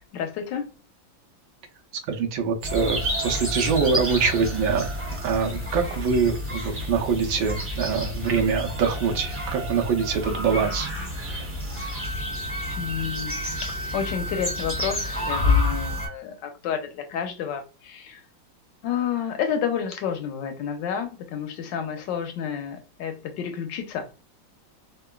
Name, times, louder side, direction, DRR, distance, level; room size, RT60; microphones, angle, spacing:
voice 1, 0.1-0.7 12.8-18.2 18.8-24.1, left 8 dB, 75° left, 1.2 m, -30 dB
voice 2, 2.1-11.5, right 5 dB, 85° right, 1.5 m, -25 dB
sound 1, 2.6-16.1, left 2 dB, 10° right, 0.8 m, -29 dB
Wind instrument woodwind instrument, 11.9-16.1, equal, 55° right, 0.9 m, -35 dB
3.7 x 2.2 x 2.3 m
omnidirectional pair, 2.1 m